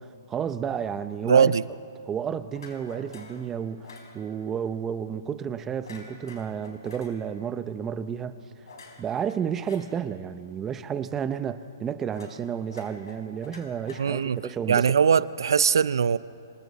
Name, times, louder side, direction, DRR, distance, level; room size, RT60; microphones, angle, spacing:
voice 1, 0.0-1.5 2.1-8.4 9.0-14.9, right 8 dB, 15° right, 12 dB, 0.6 m, -31 dB
voice 2, 1.2-1.6 14.0-14.4 14.7-16.2, right 6 dB, 80° right, 17 dB, 0.6 m, -21 dB
sound 1, 2.5-3.4 3.8-4.1 5.8-7.1 8.7-9.8 12.1-12.4 12.7-14.4, left 3 dB, 85° left, 6.0 m, -47 dB
27.5 x 25.5 x 4.2 m, 2.4 s
hypercardioid pair, 160°, 2 cm